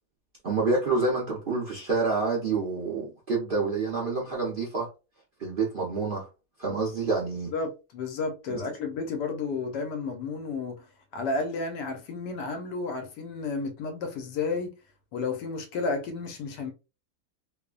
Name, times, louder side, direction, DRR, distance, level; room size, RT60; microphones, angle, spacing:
voice 1, 0.4-4.9 5.4-6.3 6.6-7.5, right 3 dB, 50° right, 0.6 m, -27 dB
voice 2, 7.5-10.8 11.1-14.7 15.1-16.7, left 4 dB, 85° left, 1.3 m, -32 dB
3.0 x 2.1 x 2.3 m
omnidirectional pair, 1.8 m